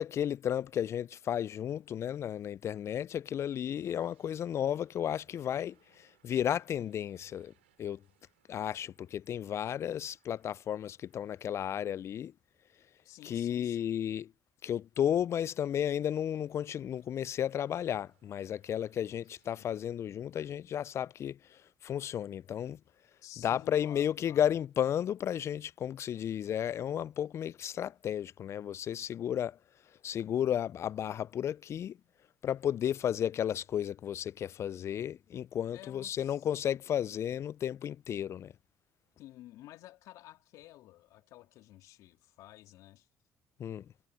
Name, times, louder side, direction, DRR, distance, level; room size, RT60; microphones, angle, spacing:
voice 1, 0.0-7.5 7.8-8.0 8.5-12.3 13.2-14.3 14.6-22.8 23.4-29.6 30.0-32.0 32.4-38.5 43.6-43.9, left 10 dB, 50° left, 0.4 m, -33 dB
sound 1, 3.8-12.9 13.4-13.5 15.0-19.9, right 14 dB, 90° right, 3.6 m, -74 dB
voice 2, 13.0-13.8 19.1-19.3 19.6-19.8 23.2-24.5 35.7-36.4 39.2-43.1, left 15 dB, 70° left, 3.1 m, -53 dB
hypercardioid pair, 55°, 6 cm